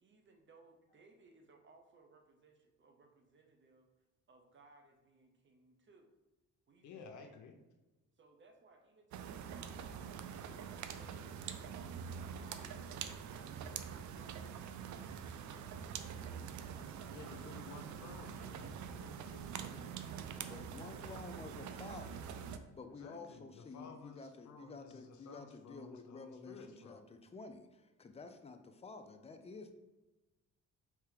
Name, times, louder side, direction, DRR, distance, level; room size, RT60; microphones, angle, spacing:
voice 1, 0.0-4.0 4.3-6.1 6.7-7.4 8.2-15.0 15.3-17.9 20.6-21.5, right 3 dB, 40° right, 4 dB, 0.8 m, -64 dB
voice 2, 6.8-7.5 17.1-20.0 22.8-27.1, left 5 dB, 70° left, 5 dB, 0.7 m, -54 dB
sound 1, 9.1-22.6, right 7 dB, 70° right, 0.5 m, -45 dB
voice 3, 20.5-29.7, left 4 dB, 20° left, 7 dB, 0.5 m, -51 dB
3.3 x 3.3 x 4.8 m, 1.1 s
cardioid pair, 90°, 30 cm